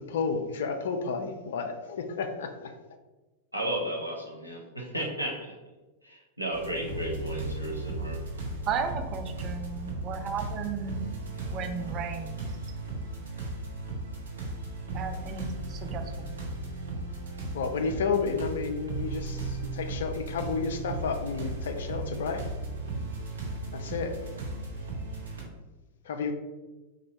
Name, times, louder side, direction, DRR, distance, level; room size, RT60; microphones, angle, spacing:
voice 1, 0.1-2.7 17.5-22.4 23.7-24.1 26.0-26.3, left 5 dB, 60° left, 6 dB, 0.4 m, -31 dB
voice 2, 3.5-5.6 6.0-8.2, right 1 dB, 90° left, -2 dB, 0.7 m, -34 dB
sound 1, 6.5-25.4, right 2 dB, 70° right, 0.8 m, -36 dB
voice 3, 8.6-11.1 11.5-12.4 14.9-16.3, right 6 dB, 35° right, 5 dB, 0.4 m, -34 dB
4.0 x 2.5 x 3.0 m, 1.2 s
figure-of-eight pair, 90°, 0 cm